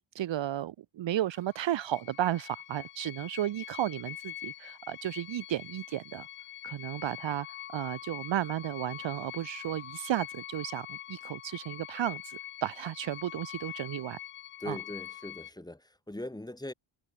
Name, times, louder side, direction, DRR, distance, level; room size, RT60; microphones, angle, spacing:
voice 1, 0.1-6.3 6.6-7.5 7.7-14.2 14.7-14.8, right 12 dB, 60° right, 1.1 m, -33 dB
sound 1, 1.3-15.5, left 13 dB, 85° left, 5.5 m, -44 dB
voice 2, 14.6-16.7, left 1 dB, 10° left, 4.7 m, -40 dB
cardioid pair, 105°, 50 cm